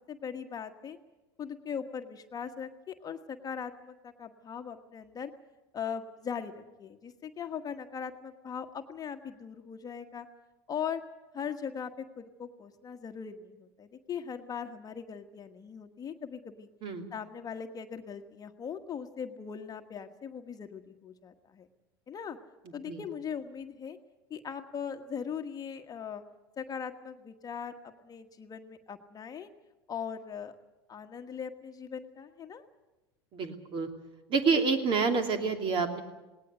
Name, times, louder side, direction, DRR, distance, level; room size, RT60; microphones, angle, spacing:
voice 1, 0.1-1.0 1.4-5.3 5.7-10.3 10.7-11.0 11.3-16.7 17.1-21.7 22.1-22.4 22.7-24.0 24.3-26.2 26.6-29.5 29.9-30.5 30.9-32.6, left 7 dB, 30° left, 6 dB, 1.4 m, -40 dB
voice 2, 33.3-33.9 34.3-36.0, right 5 dB, 40° right, 6 dB, 2.8 m, -28 dB
19.0 x 18.5 x 9.1 m, 1.1 s
hypercardioid pair, 85°, 13 cm